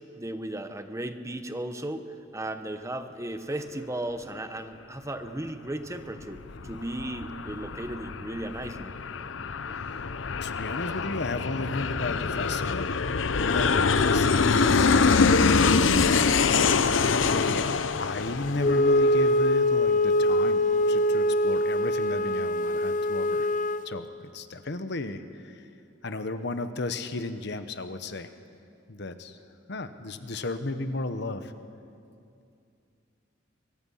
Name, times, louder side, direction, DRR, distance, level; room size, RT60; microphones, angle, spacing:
voice 1, 0.2-2.0 2.3-8.9, right 1 dB, 15° right, 8 dB, 1.0 m, -35 dB
Aircraft, 6.2-19.4, left 4 dB, 85° left, 0.7 m, -25 dB
voice 2, 10.4-12.9 13.2-16.3 17.3-23.5 23.8-24.1 24.3-25.7 26.0-28.3 28.9-29.4 29.7-31.5, left 2 dB, 60° left, 10 dB, 1.1 m, -34 dB
Wind instrument woodwind instrument, 18.6-23.9, left 1 dB, 40° left, 0.5 m, -23 dB
24.5 x 22.5 x 5.7 m, 2.5 s
head